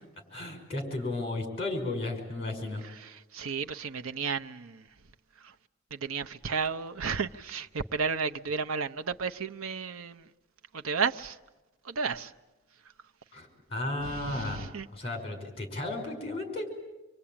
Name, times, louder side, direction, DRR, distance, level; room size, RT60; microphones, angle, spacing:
voice 1, 0.3-2.8 13.3-16.7, left 2 dB, 30° left, 5.5 m, -34 dB
voice 2, 2.8-4.9 5.4-5.5 5.9-10.3 10.7-11.4 11.8-12.3 14.0-14.9, right 5 dB, 85° right, 0.8 m, -33 dB
26.0 x 24.5 x 8.8 m
head